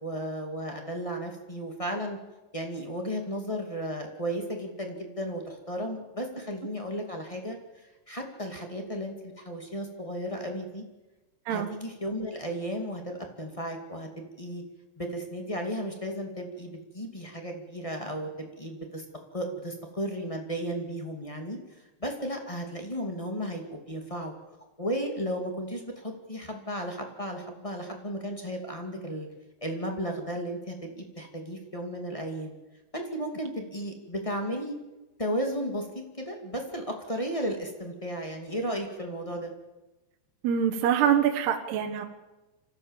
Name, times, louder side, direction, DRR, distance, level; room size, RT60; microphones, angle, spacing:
voice 1, 0.0-2.2 2.5-10.8 11.5-14.6 15.0-19.0 19.3-21.6 22.0-24.3 24.8-29.3 29.6-32.5 32.9-34.7 35.2-35.9 36.2-39.5, equal, 15° left, 3 dB, 1.2 m, -34 dB
voice 2, 40.4-42.1, right 9 dB, 75° right, 4 dB, 3.1 m, -25 dB
26.0 x 15.0 x 7.4 m, 1.1 s
omnidirectional pair, 4.9 m